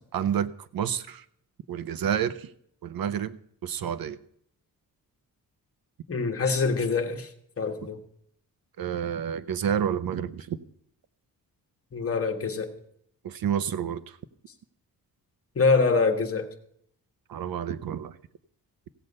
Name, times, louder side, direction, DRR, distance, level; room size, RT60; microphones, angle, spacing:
voice 1, 0.1-1.2 1.7-2.5 2.8-4.2 8.8-10.6 13.2-14.2 17.3-18.2, right 8 dB, 70° right, 14 dB, 0.8 m, -29 dB
voice 2, 6.1-7.3 7.6-8.0 11.9-12.7 15.5-16.5, left 4 dB, 40° left, 5 dB, 1.5 m, -24 dB
16.0 x 8.0 x 5.4 m, 0.68 s
wide cardioid pair, 120°, 36 cm